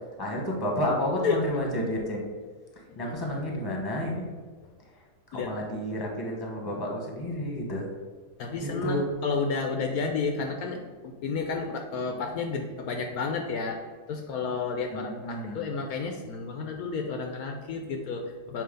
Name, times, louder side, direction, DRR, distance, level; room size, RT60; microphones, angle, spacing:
voice 1, 0.2-2.2 2.7-4.3 4.8-5.0 5.3-7.9 8.6-9.1 14.9-15.7, equal, 15° left, -1 dB, 1.1 m, -31 dB
voice 2, 8.4-18.6, left 4 dB, 70° left, 3 dB, 1.0 m, -31 dB
7.3 x 2.7 x 5.1 m, 1.5 s
omnidirectional pair, 1.7 m